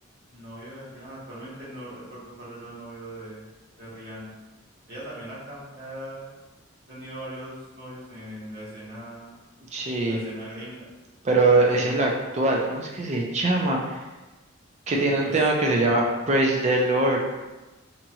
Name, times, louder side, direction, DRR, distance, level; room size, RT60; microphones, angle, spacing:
voice 1, 0.3-3.5 3.8-4.3 4.9-6.4 6.9-9.4 10.0-10.9 11.7-11.9 14.9-15.4, equal, 50° right, -9 dB, 1.1 m, -40 dB
voice 2, 9.7-10.2 11.2-13.8 14.9-17.2, right 2 dB, 35° right, 0 dB, 0.4 m, -22 dB
2.9 x 2.3 x 2.7 m, 1.1 s
head